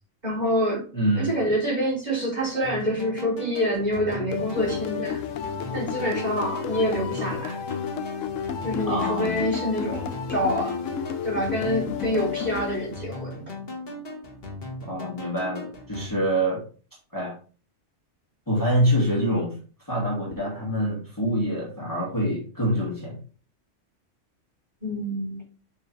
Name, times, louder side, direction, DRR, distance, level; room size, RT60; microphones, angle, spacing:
voice 1, 0.2-0.8 1.1-5.2 5.7-7.6 8.6-10.8 11.2-13.5 24.8-25.4, equal, 35° right, -4 dB, 3.9 m, -26 dB
voice 2, 0.9-1.2 8.9-9.4 14.8-16.6 17.1-17.3 18.5-19.6 19.9-23.2, equal, 15° left, -4 dB, 2.3 m, -25 dB
sound 1, 2.6-16.1, left 1 dB, 50° left, 1.9 m, -38 dB
sound 2, 4.3-13.2, left 8 dB, 85° left, 1.1 m, -32 dB
7.1 x 6.5 x 3.4 m, 0.38 s
omnidirectional pair, 1.3 m